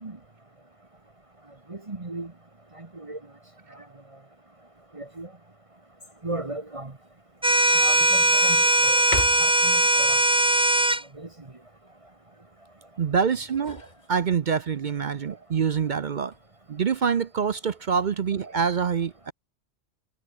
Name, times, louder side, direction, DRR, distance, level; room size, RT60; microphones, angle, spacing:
voice 1, 1.7-2.3 2.8-3.2 4.9-5.3 6.2-6.9 7.7-9.0 9.4-10.2 11.2-11.3, right 2 dB, 30° right, 1.5 m, -36 dB
sound 1, 6.0-6.5 7.0-7.1 7.6-8.5 9.0-9.7 13.2-14.6 16.0-16.5, left 2 dB, 40° left, 2.9 m, -37 dB
sound 2, 7.4-11.0, right 1 dB, 10° right, 0.4 m, -20 dB
voice 2, 13.0-16.3 16.7-19.3, right 6 dB, 50° right, 0.7 m, -26 dB
omnidirectional pair, 1.2 m